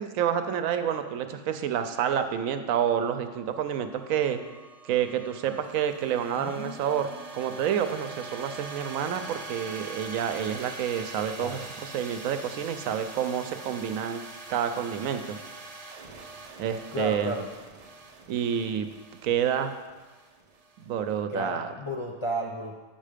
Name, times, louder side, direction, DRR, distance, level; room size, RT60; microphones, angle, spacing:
voice 1, 0.0-4.4 4.8-14.2 14.5-15.4 16.6-17.5 18.3-18.9 19.2-19.7 20.9-21.7, right 9 dB, 90° right, 9 dB, 1.0 m, -29 dB
sound 1, 2.8-21.1, right 2 dB, 40° right, 0.5 m, -44 dB
voice 2, 6.4-7.2 11.4-11.6 16.9-17.4 21.3-22.8, equal, 50° left, -1 dB, 0.3 m, -33 dB
7.4 x 5.8 x 5.0 m, 1.3 s
omnidirectional pair, 1.4 m